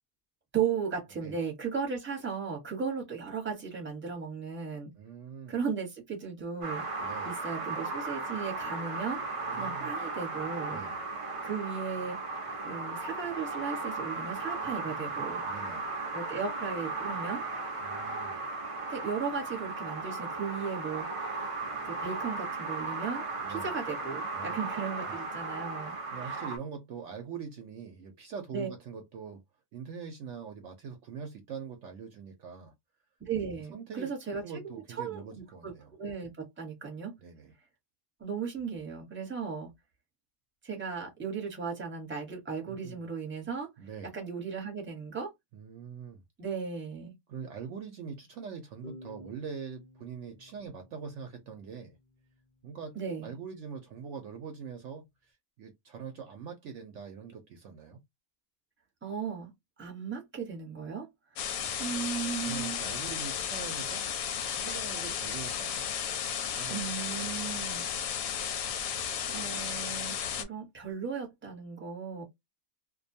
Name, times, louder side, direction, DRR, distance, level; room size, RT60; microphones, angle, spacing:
voice 1, 0.5-4.9 5.5-6.8 7.2-9.2 9.5-10.8 11.4-12.2 12.6-15.4 16.1-17.4 18.9-21.2 21.8-23.2 23.5-26.0 26.2-26.4 28.5-28.7 33.2-37.1 38.2-39.7 40.6-43.7 44.1-45.3 46.4-47.1 52.9-53.3 59.0-59.5 59.8-61.1 61.8-62.8 66.7-67.9 69.3-72.2, right 6 dB, 10° right, 0.8 m, -36 dB
voice 2, 5.0-5.5 7.0-7.3 9.4-9.9 10.7-11.0 14.6-15.1 15.5-15.9 17.8-18.4 23.4-23.7 24.3-24.6 25.0-25.3 25.9-29.4 29.7-32.7 33.7-34.1 34.4-36.0 37.2-37.5 42.7-43.0 43.8-44.1 45.5-46.2 47.3-52.0 52.6-52.9 53.2-58.0 62.4-64.0 64.6-65.9 66.5-66.8 67.1-67.3, right 6 dB, 65° right, 0.8 m, -43 dB
sound 1, 6.6-26.6, right 3 dB, 40° right, 0.4 m, -36 dB
sound 2, 48.8-52.3, left 1 dB, 55° left, 0.6 m, -52 dB
sound 3, 61.4-70.4, left 8 dB, 85° left, 1.0 m, -34 dB
2.5 x 2.2 x 2.6 m
omnidirectional pair, 1.5 m